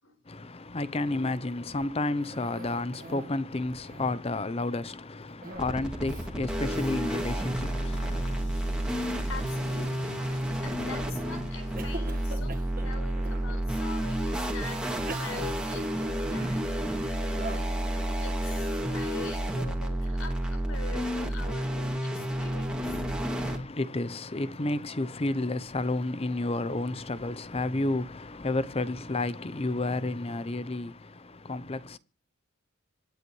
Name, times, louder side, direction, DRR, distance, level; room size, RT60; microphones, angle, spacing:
voice 1, 0.3-8.4 23.4-32.0, left 2 dB, 25° left, 0.6 m, -31 dB
Cough, 2.2-3.4 3.7-4.4 5.4-5.8 6.1-6.3 6.7-6.9 7.5-7.9 9.5-10.3 10.9-11.2 11.8-13.5 14.2-14.3 14.9-16.7 17.3-17.8, right 2 dB, 40° right, 1.5 m, -44 dB
sound 1, 5.5-23.6, right 1 dB, 5° right, 2.2 m, -30 dB
sound 2, 7.5-12.8, equal, 55° left, 2.5 m, -48 dB
voice 2, 9.3-16.6 17.5-17.7 18.2-23.0, left 4 dB, 70° left, 4.5 m, -44 dB
26.0 x 9.6 x 3.1 m
head